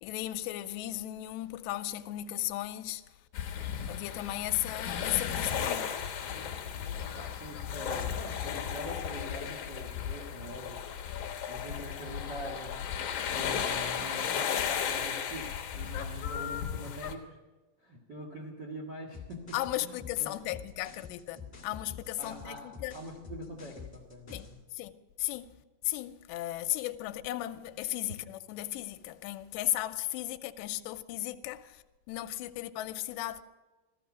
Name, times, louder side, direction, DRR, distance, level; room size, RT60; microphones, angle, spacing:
voice 1, 0.0-3.1 3.9-6.0 19.5-23.0 24.3-24.9 25.2-25.6 25.8-33.4, left 15 dB, 80° left, 2.7 m, -35 dB
sound 1, 3.3-17.1, left 8 dB, 65° left, 2.0 m, -35 dB
voice 2, 7.0-10.8 11.5-12.8 13.3-17.4 17.8-19.4 19.8-20.6 22.2-24.6, equal, 90° right, 0.9 m, -44 dB
sound 2, 19.1-24.6, left 6 dB, 35° left, 0.6 m, -47 dB
16.0 x 13.5 x 6.1 m
omnidirectional pair, 5.2 m